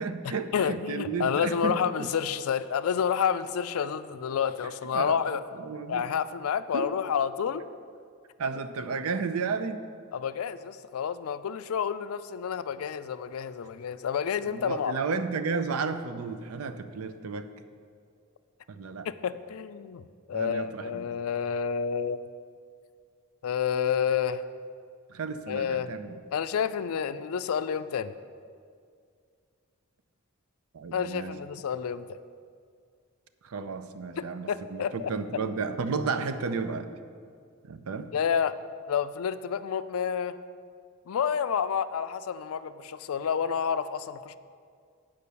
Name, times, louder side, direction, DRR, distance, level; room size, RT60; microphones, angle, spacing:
voice 1, 0.0-2.1 3.8-3.9 4.9-6.1 6.7-6.9 8.4-9.8 14.4-17.5 18.7-19.1 20.3-21.1 25.1-26.2 30.7-31.3 33.4-36.9 37.6-38.1, right 4 dB, 85° right, 10 dB, 0.5 m, -33 dB
voice 2, 0.5-5.4 5.9-7.6 10.1-15.0 19.1-22.2 23.4-24.4 25.5-25.9 26.3-28.1 30.9-32.2 34.2-35.4 38.1-38.6 38.9-40.3 41.1-44.3, left 7 dB, 75° left, 13 dB, 0.4 m, -29 dB
8.5 x 5.2 x 6.8 m, 2.2 s
head